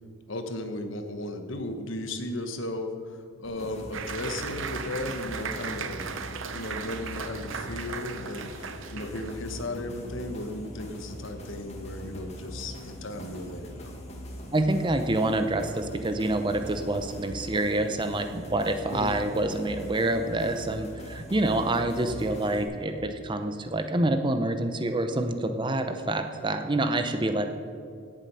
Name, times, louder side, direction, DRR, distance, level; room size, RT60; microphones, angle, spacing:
voice 1, 0.3-6.1 6.5-13.9 18.9-19.1, left 2 dB, 65° left, 7 dB, 1.1 m, -35 dB
sound 1, 3.4-22.6, equal, 30° left, 1.9 m, -42 dB
Applause, 3.9-9.7, right 6 dB, 65° right, 0.7 m, -37 dB
voice 2, 14.5-27.5, right 2 dB, 20° right, 8 dB, 0.6 m, -27 dB
17.0 x 7.5 x 5.6 m, 2.3 s
head